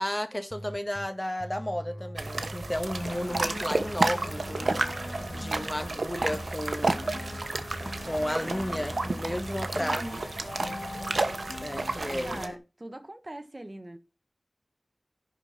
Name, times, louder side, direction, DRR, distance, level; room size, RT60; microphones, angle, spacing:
voice 1, 0.0-7.1 8.1-10.0 11.6-12.4, left 1 dB, 20° left, 1.6 m, -33 dB
sound 1, 0.5-1.1 1.4-3.4 3.8-5.9 6.2-8.2 8.6-10.1, equal, 5° left, 1.0 m, -41 dB
sound 2, 2.2-12.5, right 3 dB, 85° right, 1.1 m, -31 dB
sound 3, 3.0-12.6, left 2 dB, 75° left, 1.4 m, -42 dB
voice 2, 9.8-10.2 12.2-14.0, right 1 dB, 40° right, 1.3 m, -41 dB
11.0 x 4.5 x 5.8 m
wide cardioid pair, 50°, 0 cm